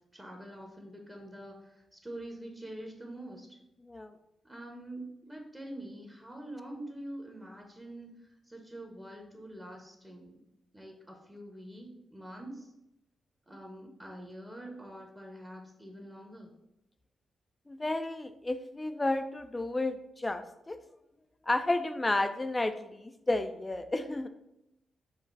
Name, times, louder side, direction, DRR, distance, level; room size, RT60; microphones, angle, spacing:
voice 1, 0.1-3.6 4.4-10.4 10.7-12.7 13.5-16.5, right 1 dB, 15° right, 2 dB, 1.0 m, -45 dB
voice 2, 3.8-4.1 17.7-20.8 21.5-24.3, left 2 dB, 25° left, 9 dB, 0.5 m, -32 dB
5.1 x 2.3 x 4.1 m, 0.86 s
supercardioid pair, 45°, 0 cm